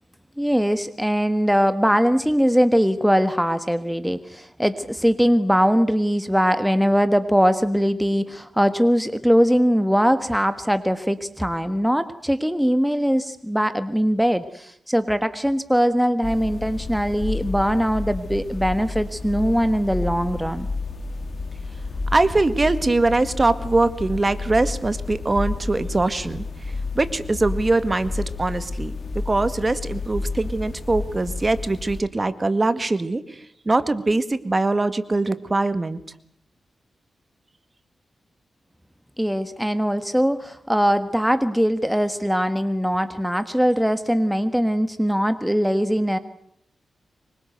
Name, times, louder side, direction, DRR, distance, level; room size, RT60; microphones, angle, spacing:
voice 1, 0.4-20.7 39.2-46.2, equal, ahead, 10 dB, 1.4 m, -21 dB
sound 1, 16.2-32.0, left 3 dB, 55° left, 3.4 m, -31 dB
voice 2, 22.1-26.5 27.0-33.2 33.7-36.0, right 2 dB, 30° right, 12 dB, 1.8 m, -22 dB
25.5 x 23.5 x 8.0 m, 0.69 s
wide cardioid pair, 95°, 0 cm